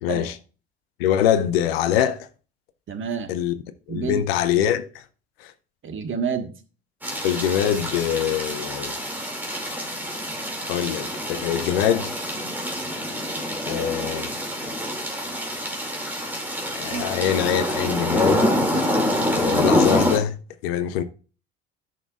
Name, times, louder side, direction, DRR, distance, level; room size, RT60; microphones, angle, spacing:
voice 1, 0.0-0.4 1.0-2.3 3.3-3.5 3.9-5.0 5.4-5.5 7.2-8.9 10.7-12.1 13.7-14.3 16.7-18.4 19.3-20.4 20.6-21.0, left 10 dB, 70° left, 0.7 m, -23 dB
voice 2, 2.9-3.3 3.9-4.2 5.8-6.5 16.9-17.0 21.0-21.1, right 6 dB, 40° right, 1.5 m, -28 dB
sound 1, 7.0-20.2, equal, 5° right, 2.4 m, -26 dB
12.0 x 6.0 x 2.4 m
figure-of-eight pair, 60°, 32 cm